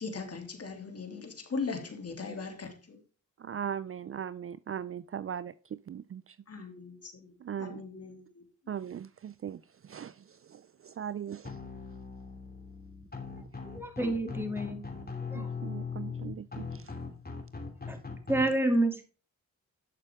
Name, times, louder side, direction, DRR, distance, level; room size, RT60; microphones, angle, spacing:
voice 1, 0.0-3.0 6.5-8.4, left 4 dB, 50° left, 5 dB, 2.9 m, -39 dB
voice 2, 3.4-6.4 7.4-7.8 8.7-11.6 15.3-16.9, right 8 dB, 45° right, 17 dB, 0.4 m, -39 dB
sound 1, 11.4-18.4, left 5 dB, 30° left, 2.9 m, -40 dB
voice 3, 13.7-14.8 15.3-15.5 17.9-18.0 18.3-19.0, right 1 dB, 5° right, 5 dB, 2.7 m, -28 dB
11.5 x 6.7 x 3.6 m, 0.36 s
cardioid pair, 65°, 31 cm